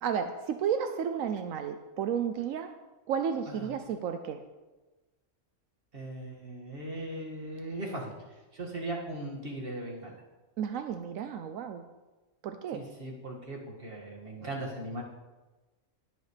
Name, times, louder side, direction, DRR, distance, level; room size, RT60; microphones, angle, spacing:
voice 1, 0.0-2.7 3.1-4.4 10.6-11.8 12.4-12.8, right 7 dB, 85° right, 8 dB, 1.1 m, -32 dB
voice 2, 5.9-8.1 8.5-10.2 12.7-15.0, right 1 dB, 45° right, -2 dB, 2.3 m, -38 dB
21.0 x 8.1 x 3.3 m, 1.2 s
omnidirectional pair, 1.3 m